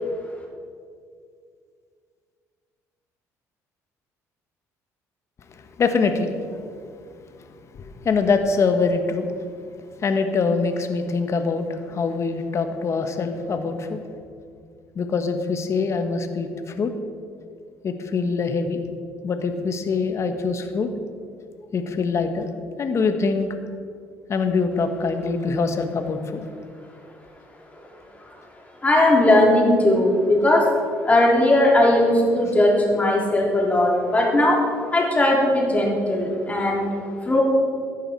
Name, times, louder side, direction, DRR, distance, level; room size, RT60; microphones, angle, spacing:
voice 1, 5.8-6.4 7.7-9.3 10.0-14.0 14.9-16.9 17.8-18.8 19.2-20.9 21.7-22.5 22.8-23.5 24.3-26.4, left 4 dB, 45° left, 7 dB, 1.4 m, -24 dB
voice 2, 28.8-30.7 31.0-34.6 34.9-36.9 37.2-37.4, left 1 dB, 20° left, -2 dB, 3.8 m, -18 dB
14.0 x 10.0 x 4.7 m, 2.2 s
supercardioid pair, 85°, 7 cm